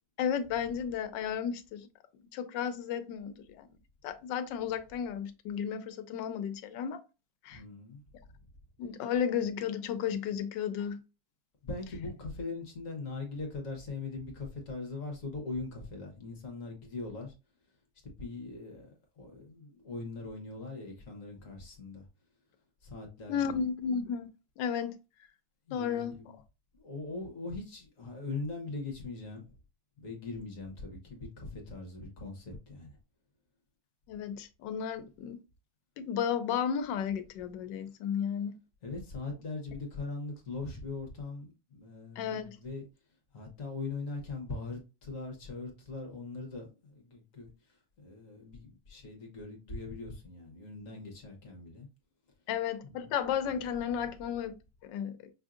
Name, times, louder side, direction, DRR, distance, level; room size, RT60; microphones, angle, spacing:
voice 1, 0.2-1.9 2.3-3.7 4.0-7.0 7.4-7.6 8.8-11.0 23.3-24.3 24.6-25.0 25.7-26.2 34.1-35.4 36.0-38.6 42.2-42.6 52.5-54.5 54.8-55.1, left 8 dB, 85° left, 1.3 m, -33 dB
voice 2, 7.5-8.0 8.3-8.4 11.6-17.3 18.2-22.1 22.8-23.6 25.7-26.4 26.8-29.5 30.0-33.0 38.8-42.8 43.3-51.9 52.8-53.1, left 3 dB, 50° left, 1.3 m, -41 dB
5.8 x 2.6 x 2.4 m
omnidirectional pair, 1.9 m